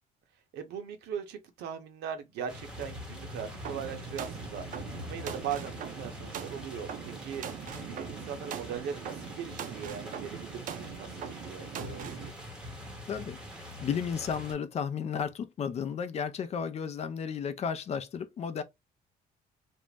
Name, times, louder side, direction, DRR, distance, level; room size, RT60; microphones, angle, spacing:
voice 1, 0.5-4.7 5.0-7.5 7.8-12.3, right 8 dB, 80° right, 0.8 m, -39 dB
sound 1, 2.5-14.5, left 1 dB, 5° right, 0.8 m, -44 dB
sound 2, 3.6-12.3, right 8 dB, 55° right, 0.5 m, -42 dB
voice 2, 13.1-18.6, left 7 dB, 40° left, 0.4 m, -33 dB
2.6 x 2.0 x 3.2 m
cardioid pair, 110°, 17 cm